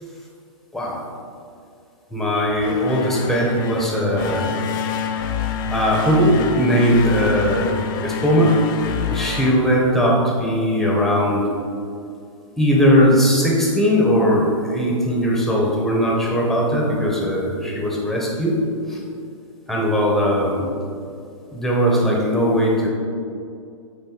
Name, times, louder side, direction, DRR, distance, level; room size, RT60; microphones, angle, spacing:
voice 1, 0.7-1.0 2.1-4.7 5.7-7.7 8.0-8.6 9.1-11.5 12.6-18.6 18.9-19.0 19.7-20.7 21.5-22.9, equal, ahead, -3 dB, 1.0 m, -19 dB
sound 1, 2.5-10.4, left 6 dB, 40° left, 0.6 m, -27 dB
9.0 x 3.9 x 3.9 m, 2.4 s
hypercardioid pair, 145°, 18 cm